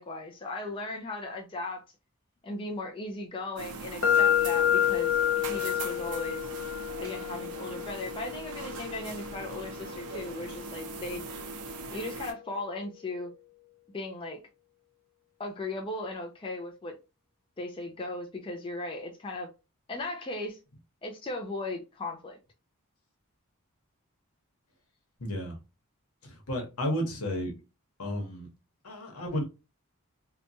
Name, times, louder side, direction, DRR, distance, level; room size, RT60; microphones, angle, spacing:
voice 1, 0.0-1.8 2.4-6.5 7.0-11.2 11.9-13.3 13.9-14.4 15.4-16.9 17.6-19.5 19.9-20.6 21.0-22.4, left 2 dB, 25° left, 0.4 m, -37 dB
sound 1, 3.6-12.3, right 4 dB, 90° right, 0.5 m, -41 dB
sound 2, 4.0-11.9, left 10 dB, 65° left, 0.6 m, -30 dB
voice 2, 25.2-25.6 26.2-27.5 28.0-28.5 28.8-29.4, equal, 90° left, 1.0 m, -32 dB
2.9 x 2.2 x 2.6 m
head